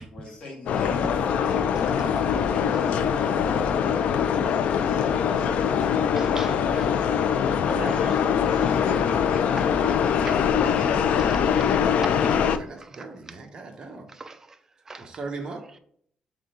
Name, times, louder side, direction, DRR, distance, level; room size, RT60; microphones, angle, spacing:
voice 1, 0.0-4.1 4.4-6.1 8.5-11.5, left 2 dB, 50° left, 1.7 m, -40 dB
sound 1, 0.7-12.6, left 7 dB, 70° left, 0.3 m, -23 dB
voice 2, 6.2-6.9 7.7-8.2 9.6-9.7 10.2-10.4 12.0-12.4 14.2-14.4 14.9-15.1, right 3 dB, 20° right, 0.4 m, -37 dB
voice 3, 12.2-14.2 15.0-15.7, right 3 dB, 35° right, 0.9 m, -39 dB
3.7 x 3.4 x 4.2 m
cardioid pair, 140°, 2 cm